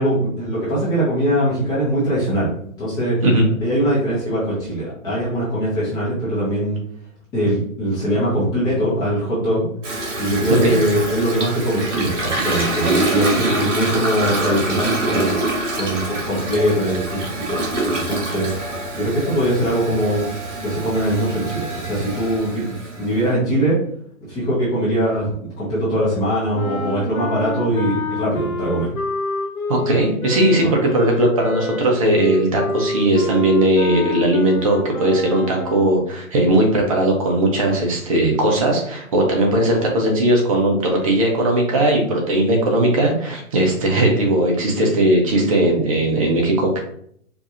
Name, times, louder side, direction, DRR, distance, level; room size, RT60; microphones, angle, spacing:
voice 1, 0.0-2.5 2.8-3.2 3.6-6.8 7.3-9.7 10.2-15.4 15.8-17.2 17.5-17.6 17.9-18.5 18.9-20.2 20.6-23.8 24.2-25.3 25.6-28.9, right 1 dB, 10° left, -9 dB, 0.8 m, -21 dB
Toilet flush, 9.8-23.3, right 2 dB, 60° right, 1.4 m, -26 dB
sound 1, 26.5-36.1, left 2 dB, 75° left, 0.7 m, -28 dB
voice 2, 29.7-46.8, right 1 dB, 25° right, 0 dB, 0.7 m, -18 dB
4.7 x 2.5 x 2.5 m, 0.66 s
figure-of-eight pair, 130°, 42 cm